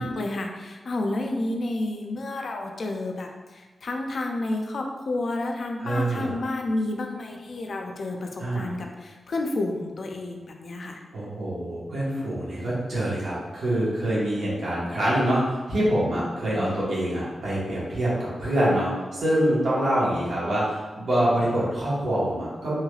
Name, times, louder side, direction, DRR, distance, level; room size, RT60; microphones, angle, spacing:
voice 1, 0.0-11.0, left 2 dB, 70° left, 2 dB, 0.4 m, -30 dB
voice 2, 5.8-6.3 8.4-8.7 11.1-22.8, right 1 dB, 80° right, -8 dB, 1.3 m, -25 dB
3.1 x 3.0 x 2.3 m, 1.3 s
cardioid pair, 50°, 0 cm